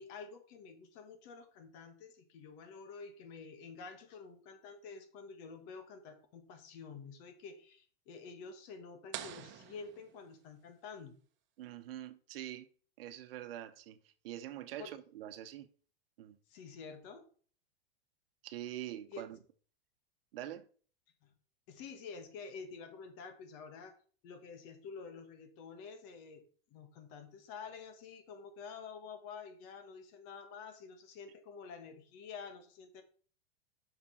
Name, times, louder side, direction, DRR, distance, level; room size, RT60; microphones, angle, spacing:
voice 1, 0.0-11.1 14.8-14.9 16.5-17.3 19.1-19.2 21.2-21.3 21.7-23.9 24.2-26.4 26.7-33.0, left 5 dB, 55° left, 2.0 m, -49 dB
sound 1, 9.1-10.8, right 12 dB, 40° right, 1.0 m, -47 dB
voice 2, 11.6-12.7 13.0-14.0 14.2-15.7 16.2-16.4 18.4-19.4 20.3-20.7, right 12 dB, 70° right, 1.0 m, -44 dB
7.1 x 6.0 x 4.4 m
hypercardioid pair, 115°, 30 cm